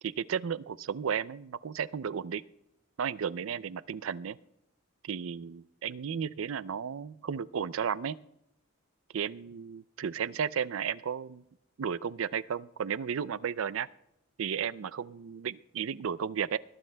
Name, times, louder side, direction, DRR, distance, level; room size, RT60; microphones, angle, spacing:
voice 1, 0.0-2.4 3.0-4.4 5.0-8.2 9.1-11.4 11.8-13.9 14.4-16.6, right 7 dB, 75° right, 17 dB, 0.4 m, -34 dB
21.5 x 20.0 x 2.2 m, 0.82 s
head